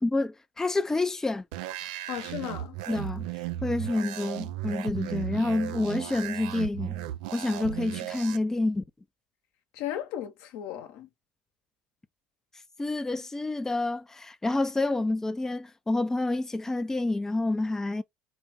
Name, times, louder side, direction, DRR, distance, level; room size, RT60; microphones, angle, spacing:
voice 1, 0.0-1.4 2.9-3.3 3.6-7.0 7.3-8.8 12.8-18.0, left 2 dB, 10° left, 0.5 m, -28 dB
sound 1, 1.5-8.4, right 13 dB, 80° right, 0.4 m, -36 dB
voice 2, 1.8-2.8 9.7-11.1, left 11 dB, 70° left, 1.0 m, -36 dB
4.1 x 2.5 x 3.5 m
hypercardioid pair, 80°, 4 cm